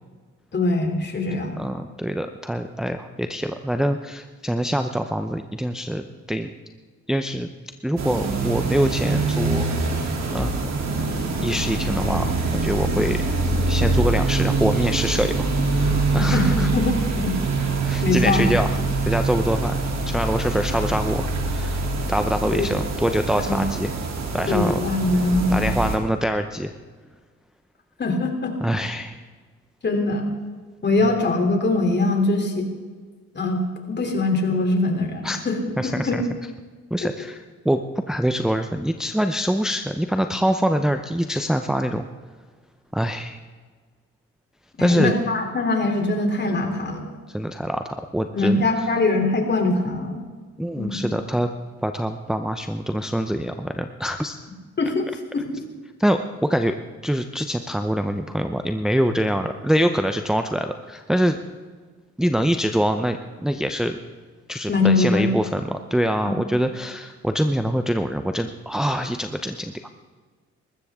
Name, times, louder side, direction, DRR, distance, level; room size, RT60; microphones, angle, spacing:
voice 1, 0.5-1.6 16.2-17.4 18.0-18.5 22.5-22.7 23.5-23.6 24.5-25.7 28.0-28.5 29.8-30.2 30.8-32.7 33.3-35.6 35.8-36.1 44.8-47.0 48.3-50.2 50.8-51.1 54.8-55.0 55.3-55.6 64.7-65.3 66.2-66.3, left 2 dB, 35° left, 3 dB, 3.3 m, -22 dB
voice 2, 1.6-6.5 7.1-7.5 7.8-9.7 10.3-10.7 11.4-13.2 13.7-16.7 17.8-18.7 19.1-19.8 20.1-21.8 22.1-23.9 24.3-24.8 25.5-26.7 28.6-29.2 35.2-35.4 35.8-36.2 36.9-37.8 38.1-42.1 42.9-43.4 44.8-45.1 47.3-48.9 50.6-51.5 51.8-54.4 56.0-56.8 57.0-61.4 62.2-64.0 64.5-69.9, equal, ahead, 6 dB, 0.7 m, -24 dB
sound 1, 8.0-26.0, right 3 dB, 60° right, 3.1 m, -24 dB
20.0 x 15.5 x 3.7 m, 1.5 s
cardioid pair, 90°, 30 cm